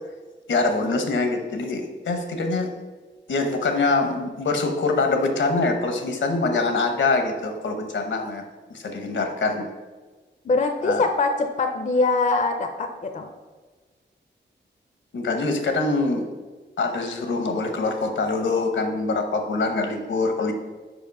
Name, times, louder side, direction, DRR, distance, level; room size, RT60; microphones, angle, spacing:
voice 1, 0.5-2.7 3.3-8.4 8.7-9.7 10.8-11.0 15.1-16.2 16.8-20.5, left 3 dB, 80° left, 5 dB, 1.0 m, -24 dB
voice 2, 10.4-13.3, left 3 dB, 40° left, 6 dB, 0.5 m, -23 dB
5.1 x 5.0 x 5.3 m, 1.3 s
wide cardioid pair, 140°, 19 cm